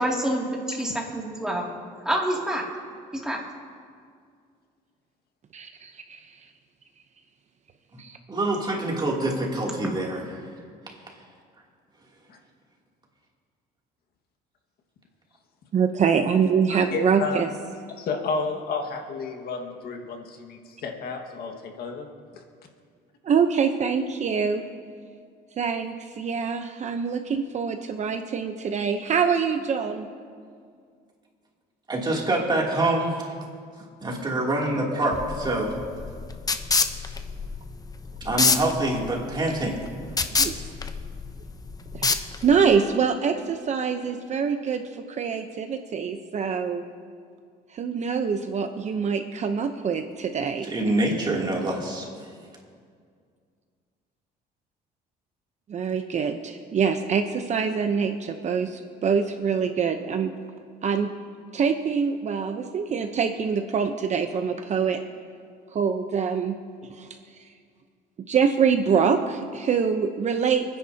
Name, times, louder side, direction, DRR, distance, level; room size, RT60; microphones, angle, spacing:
voice 1, 0.0-1.7 2.0-2.7 3.1-3.4, right 1 dB, 5° right, -2 dB, 2.6 m, -27 dB
voice 2, 5.5-6.4 8.0-8.2 15.7-17.5 23.2-24.6 25.6-30.1 40.4-40.5 41.9-42.2 42.4-46.8 47.7-50.7 55.7-60.3 60.8-61.1 61.5-65.0 65.7-66.5 66.8-67.2 68.3-70.6, right 6 dB, 45° right, 6 dB, 0.8 m, -25 dB
voice 3, 8.3-10.2 31.9-33.1 34.0-35.7 38.2-39.8 50.6-52.1, right 2 dB, 25° right, -2 dB, 3.0 m, -25 dB
voice 4, 16.9-17.4 18.0-22.1 22.3-22.4, left 4 dB, 65° left, 3 dB, 1.8 m, -31 dB
sound 1, 35.1-42.8, left 4 dB, 20° left, 0.8 m, -27 dB
29.5 x 10.0 x 2.9 m, 2.1 s
cardioid pair, 110°, 17 cm